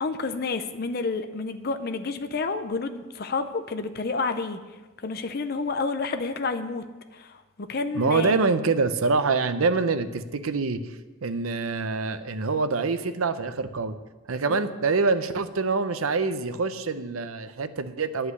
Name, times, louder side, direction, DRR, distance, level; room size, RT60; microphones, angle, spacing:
voice 1, 0.0-4.6 5.0-6.8 7.1-8.4 14.5-14.6, left 4 dB, 50° left, 9 dB, 0.6 m, -29 dB
voice 2, 7.9-11.0 11.2-14.0 14.3-18.3, right 4 dB, 90° right, 11 dB, 0.7 m, -25 dB
9.8 x 5.6 x 8.0 m, 1.2 s
head